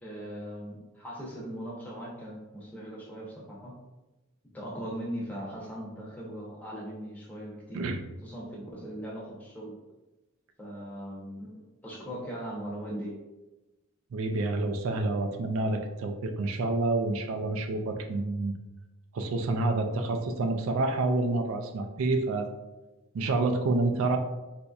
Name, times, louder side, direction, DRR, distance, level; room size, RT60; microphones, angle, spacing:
voice 1, 0.0-3.8 4.5-7.9 8.2-9.7 10.6-13.1, equal, 5° left, -5 dB, 0.7 m, -39 dB
voice 2, 14.1-18.5 19.1-22.5 23.1-24.2, right 2 dB, 70° right, 6 dB, 0.3 m, -28 dB
4.0 x 2.6 x 2.3 m, 1.1 s
head